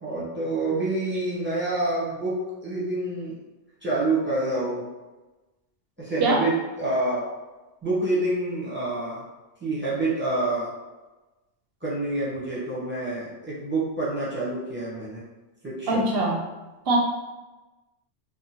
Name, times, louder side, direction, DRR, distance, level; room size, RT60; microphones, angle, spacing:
voice 1, 0.0-3.3 3.8-4.9 6.0-7.3 7.8-9.2 9.6-10.7 11.8-15.2 15.6-16.0, right 2 dB, 10° right, -9 dB, 0.7 m, -27 dB
voice 2, 15.9-16.4 16.9-17.0, right 2 dB, 60° right, -1 dB, 0.7 m, -22 dB
3.0 x 2.0 x 2.8 m, 1.1 s
omnidirectional pair, 1.3 m